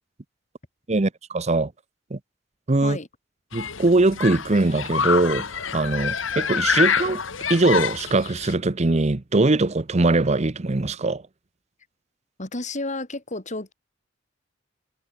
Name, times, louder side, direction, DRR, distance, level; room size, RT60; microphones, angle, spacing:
voice 1, 0.9-1.7 2.1-2.2 2.7-3.0 3.5-5.5 5.7-7.2 7.5-11.2, right 2 dB, 35° right, 0.8 m, -21 dB
Human group actions, 3.5-8.5, left 6 dB, 85° left, 2.1 m, -26 dB
voice 2, 12.4-13.7, left 2 dB, 40° left, 2.9 m, -31 dB
head